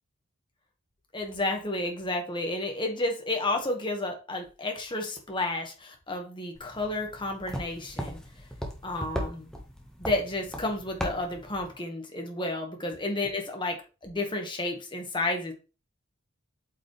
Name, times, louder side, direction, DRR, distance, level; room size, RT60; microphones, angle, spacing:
voice 1, 1.1-8.2 8.8-9.5 10.0-13.8 14.0-15.5, left 2 dB, 20° left, 3 dB, 1.6 m, -31 dB
sound 1, 6.6-11.8, equal, 5° left, 1.4 m, -38 dB
8.3 x 5.2 x 3.3 m, 0.32 s
head